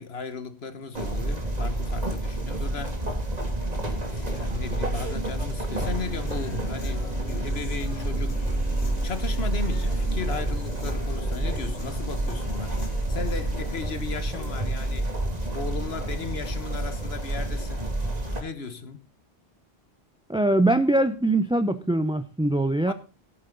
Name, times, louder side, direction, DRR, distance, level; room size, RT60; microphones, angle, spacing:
voice 1, 0.0-3.0 4.1-8.6 9.0-15.2 15.5-17.9 18.4-19.0 22.9-23.0, left 5 dB, 70° left, 1.6 m, -36 dB
sound 1, 0.9-18.4, right 1 dB, 40° right, 2.6 m, -29 dB
Human voice / Guitar, 5.8-13.8, left 4 dB, 85° left, 1.4 m, -43 dB
voice 2, 20.3-22.9, right 1 dB, 5° right, 0.5 m, -22 dB
17.5 x 8.4 x 3.9 m
omnidirectional pair, 1.1 m